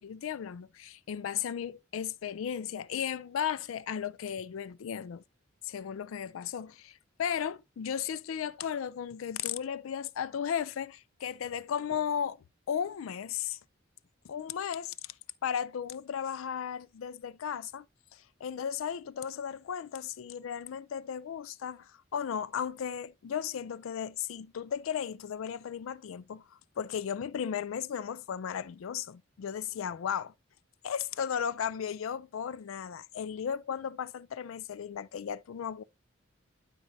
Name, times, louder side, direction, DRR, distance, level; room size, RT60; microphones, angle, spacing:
voice 1, 0.0-5.2 5.6-12.4 12.7-13.6 14.2-14.9 15.4-17.8 18.1-30.3 30.8-35.8, left 8 dB, 80° left, 0.4 m, -35 dB
12.0 x 4.2 x 2.6 m
head